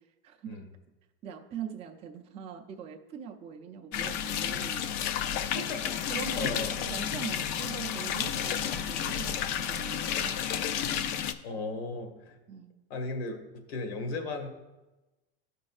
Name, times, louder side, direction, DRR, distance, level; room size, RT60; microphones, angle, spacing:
voice 1, 0.2-0.6 1.2-4.8 6.1-10.4 11.5-11.6 12.5-12.7, right 8 dB, 20° right, 2 dB, 0.4 m, -42 dB
sound 1, 3.9-11.3, left 9 dB, 45° left, 0.4 m, -31 dB
voice 2, 5.5-5.9 6.4-6.8 11.4-12.4 12.9-13.4 13.7-14.5, left 3 dB, 80° left, 4 dB, 1.5 m, -35 dB
Trumpet, 5.9-10.6, left 2 dB, 20° left, 0.7 m, -50 dB
13.0 x 5.3 x 2.4 m, 1.1 s
supercardioid pair, 165°, 31 cm